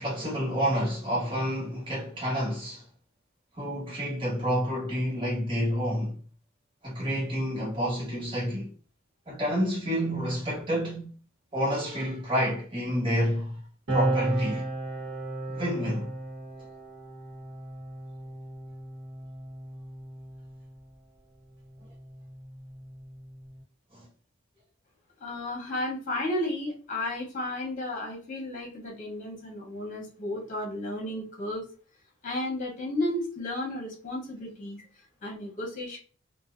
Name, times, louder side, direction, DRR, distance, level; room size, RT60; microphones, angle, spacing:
voice 1, 0.0-2.9 3.6-6.2 6.8-8.7 9.3-11.1 11.5-13.6 13.9-14.7 15.5-16.1 23.9-24.1, equal, 25° right, 1.2 m, -29 dB
sound 1, 13.9-20.8 21.8-23.6, right 2 dB, 65° right, 1.0 m, -34 dB
voice 2, 25.2-31.6 32.2-34.8 35.2-36.0, left 1 dB, 40° left, 0.9 m, -33 dB
2.6 x 2.1 x 2.4 m
head